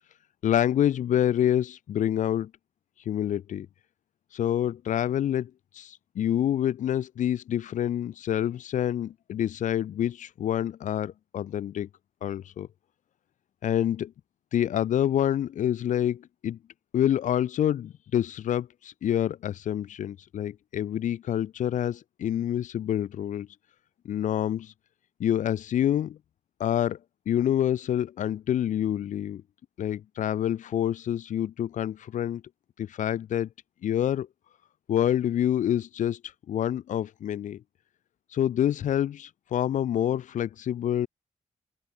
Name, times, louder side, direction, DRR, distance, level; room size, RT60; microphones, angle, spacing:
voice 1, 0.4-2.5 3.0-3.7 4.3-11.9 12.2-12.7 13.6-14.1 14.5-16.6 16.9-23.5 24.0-24.7 25.2-26.2 26.6-27.0 27.3-29.4 29.8-32.4 32.8-33.5 33.8-34.3 34.9-36.2 36.5-37.6 38.3-41.1, left 10 dB, 90° left, 1.3 m, -27 dB
open air
wide cardioid pair, 155°, 13 cm